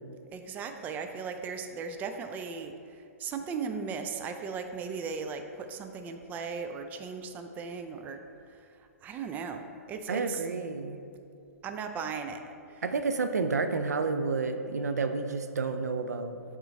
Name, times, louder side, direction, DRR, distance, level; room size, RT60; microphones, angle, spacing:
voice 1, 0.3-8.2 8.5-10.4 11.6-12.8, right 5 dB, 20° right, 6 dB, 0.4 m, -37 dB
voice 2, 10.1-11.0 12.8-16.4, right 4 dB, 85° right, 8 dB, 0.5 m, -30 dB
8.1 x 3.8 x 4.1 m, 2.4 s
hypercardioid pair, 125°, 9 cm